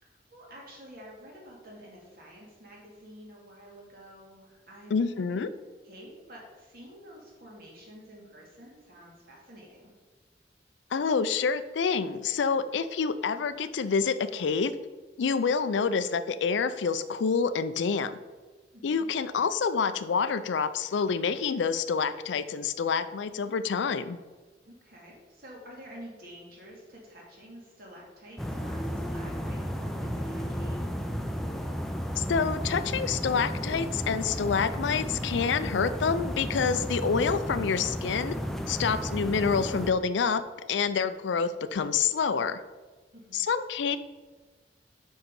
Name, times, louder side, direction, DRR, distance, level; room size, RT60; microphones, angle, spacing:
voice 1, 0.0-5.5 5.8-9.9 18.7-19.1 24.6-30.9 43.1-43.4, equal, 50° right, -2 dB, 2.2 m, -49 dB
voice 2, 4.9-5.5 10.9-14.7 15.2-18.2 18.8-24.2 32.2-38.3 38.7-40.4 40.7-42.6 43.3-44.0, left 5 dB, 75° left, 13 dB, 0.4 m, -27 dB
sound 1, 28.4-39.9, equal, ahead, 0.4 m, -33 dB
5.7 x 5.5 x 5.3 m, 1.3 s
head